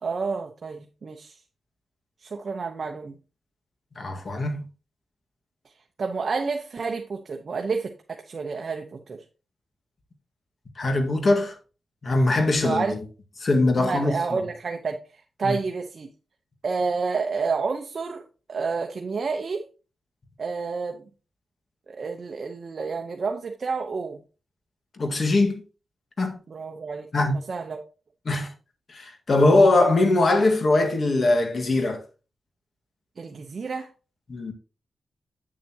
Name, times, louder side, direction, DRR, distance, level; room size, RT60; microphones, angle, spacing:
voice 1, 0.0-1.4 2.2-3.1 6.0-9.2 12.6-13.0 13.8-15.0 15.4-16.1 16.6-18.2 18.5-19.6 20.4-21.0 21.9-24.2 26.5-27.1 27.5-27.8 33.2-33.9, right 4 dB, 55° right, 1.0 m, -29 dB
voice 2, 4.0-4.6 10.8-11.5 12.0-13.0 13.4-14.2 15.4-15.6 25.0-25.6 26.2-26.4 27.1-27.4 28.3-28.5 28.9-32.0 34.3-34.5, left 2 dB, 45° left, 1.9 m, -21 dB
8.4 x 7.5 x 3.0 m
wide cardioid pair, 110°, 0 cm